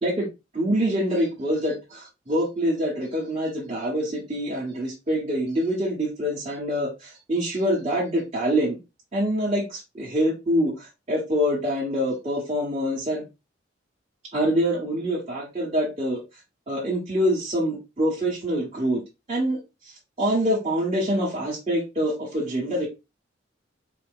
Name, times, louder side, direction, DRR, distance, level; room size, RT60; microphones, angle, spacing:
voice 1, 0.5-8.8 9.1-13.2 14.3-16.2 16.7-19.0 19.3-19.6 20.2-22.9, equal, 35° right, 1.4 m, -25 dB
4.6 x 2.3 x 3.5 m
head